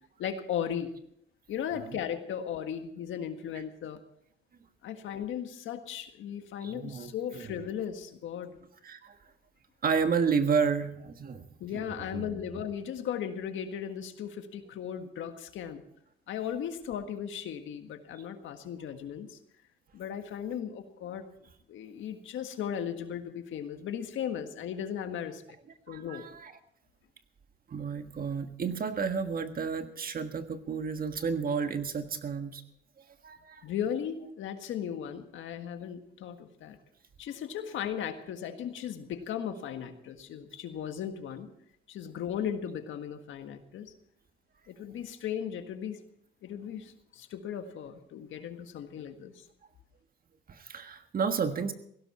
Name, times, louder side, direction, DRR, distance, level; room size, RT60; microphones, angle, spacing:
voice 1, 0.2-0.9 1.5-4.0 4.8-8.5 11.6-15.8 16.3-19.4 19.9-21.3 21.7-25.6 25.9-26.3 33.6-36.8 37.2-41.5 41.9-43.9 44.7-46.0 46.4-49.4, left 9 dB, 80° left, 7 dB, 1.7 m, -36 dB
voice 2, 6.6-7.6 8.8-9.2 9.8-11.4 11.7-12.6 25.9-26.5 27.7-32.6 33.2-33.6 50.5-51.7, right 6 dB, 45° right, 8 dB, 1.6 m, -31 dB
17.0 x 16.5 x 4.3 m, 0.70 s
cardioid pair, 90°, 20 cm